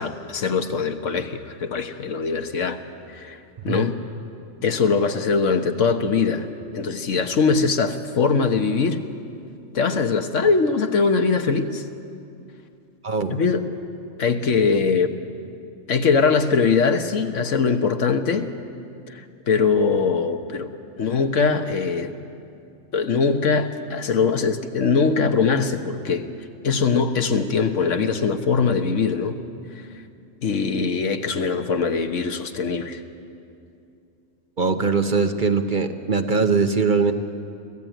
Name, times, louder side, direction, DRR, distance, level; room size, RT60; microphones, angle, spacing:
voice 1, 0.0-2.8 3.1-4.0 4.6-6.5 6.7-9.0 9.7-11.8 13.3-13.7 14.2-15.2 15.9-18.5 19.1-20.7 21.0-22.1 22.9-26.3 26.6-29.4 29.7-29.8 30.4-33.0, left 5 dB, 75° left, 7 dB, 1.5 m, -22 dB
voice 2, 13.0-13.4 34.6-37.1, right 4 dB, 40° right, 7 dB, 1.1 m, -21 dB
25.0 x 16.0 x 9.1 m, 2.6 s
omnidirectional pair, 1.3 m